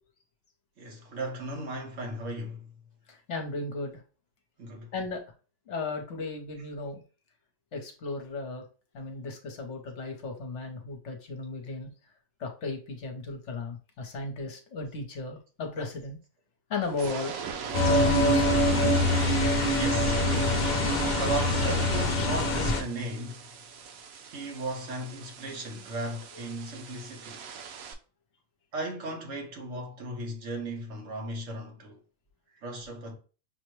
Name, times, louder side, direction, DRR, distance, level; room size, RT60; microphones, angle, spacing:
voice 1, 0.8-2.7 4.6-4.9 19.7-20.3 21.1-23.5 24.2-27.4 28.7-32.0 32.6-33.1, right 1 dB, 65° right, 1.3 m, -36 dB
voice 2, 3.1-4.0 4.9-5.2 5.7-7.0 7.7-8.6 8.9-11.9 12.4-16.2 16.7-17.3 17.8-18.6, left 3 dB, 60° left, 1.1 m, -35 dB
sound 1, 16.8-27.9, right 6 dB, 85° right, 1.1 m, -39 dB
sound 2, 17.7-22.8, left 1 dB, 45° left, 0.6 m, -24 dB
5.8 x 2.1 x 3.0 m
omnidirectional pair, 1.4 m